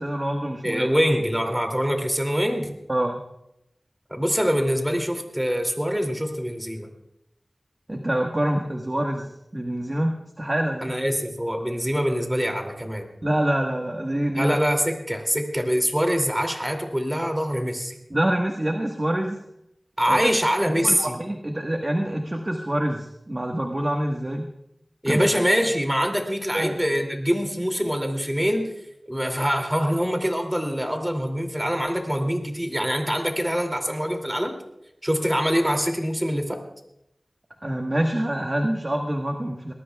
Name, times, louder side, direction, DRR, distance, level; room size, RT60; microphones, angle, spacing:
voice 1, 0.0-0.9 2.9-3.2 7.9-10.9 13.2-14.6 18.1-19.4 20.1-20.2 20.7-24.5 25.1-25.2 26.5-26.8 37.6-39.7, right 1 dB, 30° right, 2 dB, 1.4 m, -26 dB
voice 2, 0.6-2.7 4.1-6.9 10.8-13.1 14.3-18.0 20.0-21.1 25.0-28.7 29.1-34.5 35.0-36.6, equal, 10° right, 3 dB, 2.7 m, -24 dB
23.0 x 19.0 x 2.4 m, 0.83 s
wide cardioid pair, 65°, 0 cm